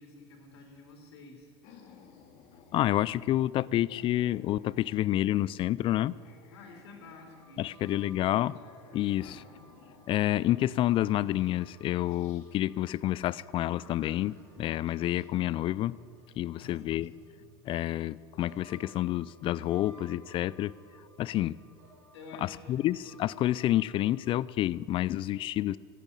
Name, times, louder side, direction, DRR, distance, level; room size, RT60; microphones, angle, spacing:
voice 1, 0.0-1.5 6.5-8.6 9.2-9.6 16.5-17.5 22.1-22.8, left 3 dB, 85° left, 2 dB, 3.6 m, -51 dB
sound 1, 1.6-3.5 3.8-5.5 5.9-7.9 8.4-10.2 10.7-12.5 13.4-15.3, left 6 dB, 60° left, 2.2 m, -56 dB
voice 2, 2.7-6.1 7.6-8.5 8.9-9.4 10.1-16.0 16.4-17.1 17.7-20.7 21.2-21.6 22.4-25.8, left 14 dB, 40° left, 21 dB, 0.4 m, -29 dB
sound 2, 7.3-18.1 18.4-24.3, right 1 dB, 75° right, 3.9 m, -60 dB
14.5 x 9.2 x 9.1 m, 2.3 s
supercardioid pair, 105°, 14 cm